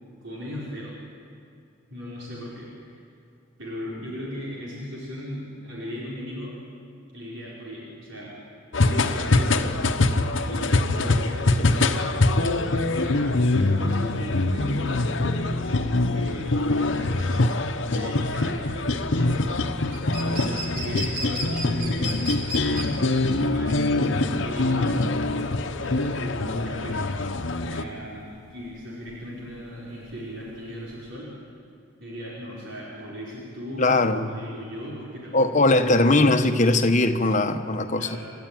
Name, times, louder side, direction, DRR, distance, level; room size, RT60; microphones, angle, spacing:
voice 1, 0.2-1.0 1.9-3.0 3.6-6.5 7.1-8.3 8.8-9.8 10.4-12.1 12.7-15.1 15.4-15.8 16.1-19.6 20.2-22.1 22.5-22.9 23.2-25.0 25.8-27.0 27.6-31.3 32.0-36.3 37.9-38.3, equal, 70° right, -6 dB, 4.9 m, -37 dB
sound 1, 8.7-27.8, left 2 dB, 70° left, 1.0 m, -24 dB
sound 2, 14.8-31.1, equal, 45° right, 3.9 m, -38 dB
voice 2, 33.8-34.3 35.3-38.1, left 2 dB, 40° left, 7 dB, 1.2 m, -20 dB
28.5 x 13.0 x 9.2 m, 2.4 s
head